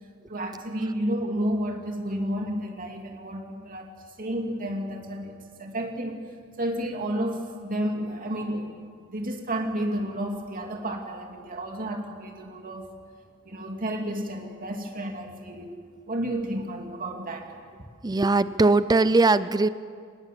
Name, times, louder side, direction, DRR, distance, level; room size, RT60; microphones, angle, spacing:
voice 1, 0.3-6.2 6.6-8.7 9.1-12.9 13.4-15.8 16.1-17.5, right 1 dB, 40° right, 2 dB, 2.7 m, -31 dB
voice 2, 18.0-19.7, right 3 dB, 20° right, 14 dB, 0.5 m, -20 dB
25.0 x 20.5 x 7.6 m, 2.1 s
head